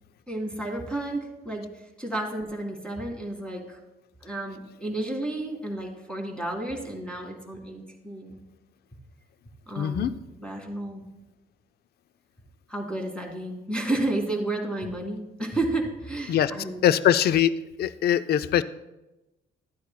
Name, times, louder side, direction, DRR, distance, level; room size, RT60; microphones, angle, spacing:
voice 1, 0.3-1.7 2.0-3.8 4.2-8.4 9.7-10.1 10.4-11.0 12.7-16.9, right 2 dB, 5° left, 0 dB, 2.0 m, -31 dB
voice 2, 9.8-10.1 16.3-16.5 16.8-17.5 17.8-18.6, left 10 dB, 55° left, 14 dB, 0.4 m, -22 dB
12.5 x 9.3 x 2.2 m, 1.0 s
cardioid pair, 90°, 20 cm